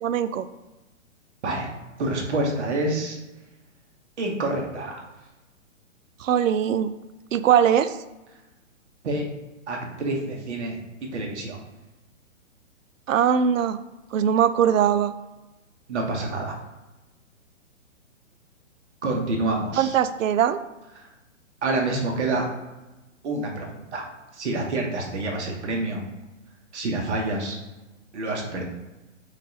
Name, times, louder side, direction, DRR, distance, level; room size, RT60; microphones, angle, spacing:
voice 1, 0.0-0.5 6.2-6.9 7.3-8.0 13.1-13.8 14.1-15.1 19.8-20.6, right 9 dB, 75° right, 12 dB, 0.5 m, -21 dB
voice 2, 1.4-1.7 2.0-3.2 4.2-5.1 9.0-9.3 9.7-10.8 11.1-11.6 15.9-16.6 19.0-19.9 21.0-21.1 21.6-22.4 23.2-24.0 24.3-26.0 26.7-27.6 28.1-28.6, right 2 dB, 60° right, 1 dB, 1.3 m, -27 dB
5.2 x 2.6 x 3.9 m, 1.1 s
hypercardioid pair, 165°, 39 cm